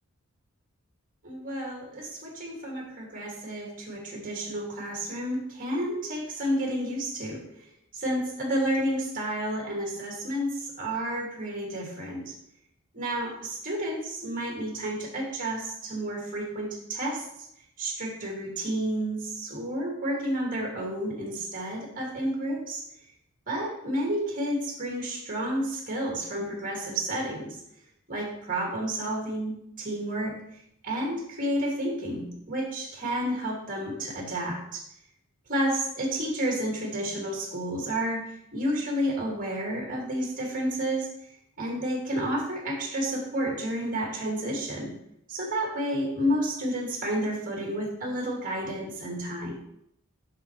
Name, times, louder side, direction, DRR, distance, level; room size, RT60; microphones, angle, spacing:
voice 1, 1.2-7.7 7.9-12.4 12.9-17.3 17.8-22.8 23.5-27.6 28.1-34.8 35.5-38.2 38.5-41.3 41.6-44.9 45.3-49.5, right 1 dB, 40° right, -2 dB, 2.3 m, -31 dB
7.7 x 6.1 x 3.2 m, 0.75 s
head